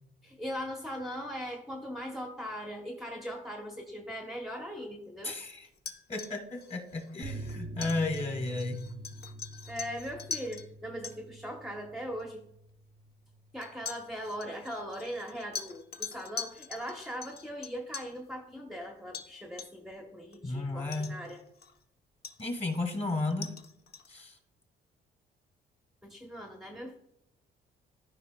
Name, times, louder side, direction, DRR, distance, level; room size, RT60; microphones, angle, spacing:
voice 1, 0.2-5.3 9.7-12.4 13.5-21.4 26.0-27.0, equal, ahead, 2 dB, 0.9 m, -40 dB
voice 2, 5.2-5.7 6.1-8.8 20.4-21.1 22.4-23.5 24.1-24.3, left 2 dB, 30° left, 5 dB, 1.9 m, -33 dB
sound 1, 5.7-10.7 11.0-11.2 12.2-12.3 13.6-18.2 19.1-19.3 19.6-19.9 20.3-20.4 20.9-21.8 22.2-24.2, left 5 dB, 55° left, 0.9 m, -43 dB
sound 2, 7.2-14.3 14.6-14.7 15.0-15.1, right 2 dB, 45° right, 0.6 m, -46 dB
13.5 x 5.1 x 2.2 m, 0.78 s
cardioid pair, 90°, 20 cm